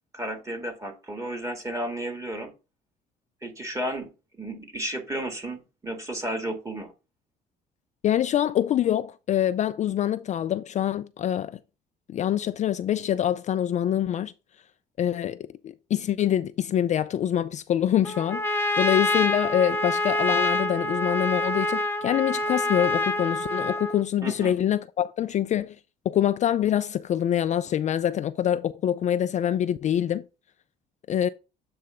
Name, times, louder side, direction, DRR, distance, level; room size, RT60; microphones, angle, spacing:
voice 1, 0.1-2.5 3.4-4.1 4.4-6.9 24.2-24.6, right 1 dB, 20° right, 1.9 m, -33 dB
voice 2, 8.0-11.6 12.1-14.3 15.0-25.8 26.1-30.2 31.1-31.3, left 10 dB, 45° left, 0.4 m, -25 dB
Trumpet, 18.0-24.0, left 2 dB, 15° left, 0.8 m, -26 dB
7.6 x 3.3 x 4.9 m
cardioid pair, 110°, 17 cm